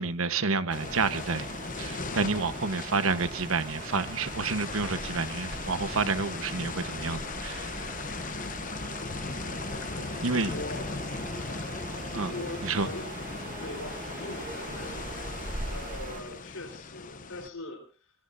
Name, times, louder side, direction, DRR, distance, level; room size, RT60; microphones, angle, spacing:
voice 1, 0.0-1.5 1.8-7.9 10.2-10.5 12.1-12.3 12.6-12.9, right 4 dB, 75° right, 1.1 m, -29 dB
sound 1, 0.7-17.5, left 4 dB, 35° left, 0.8 m, -38 dB
sound 2, 0.7-16.2, right 2 dB, 40° right, 1.9 m, -41 dB
voice 2, 9.0-11.5 12.3-13.2 13.6-18.1, left 2 dB, 85° left, 4.0 m, -43 dB
sound 3, 9.5-16.6, right 1 dB, 10° right, 3.9 m, -49 dB
25.5 x 21.5 x 2.6 m
head